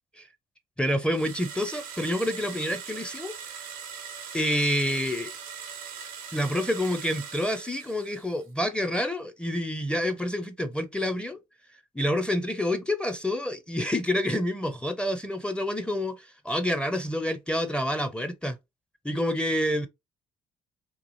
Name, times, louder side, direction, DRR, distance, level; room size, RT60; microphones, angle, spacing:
voice 1, 0.8-3.4 4.3-5.3 6.3-11.4 11.9-18.6 19.0-19.9, left 1 dB, 5° left, 0.5 m, -28 dB
sound 1, 1.1-8.4, right 7 dB, 90° right, 0.7 m, -41 dB
3.0 x 2.4 x 2.5 m
hypercardioid pair, 55°, 17 cm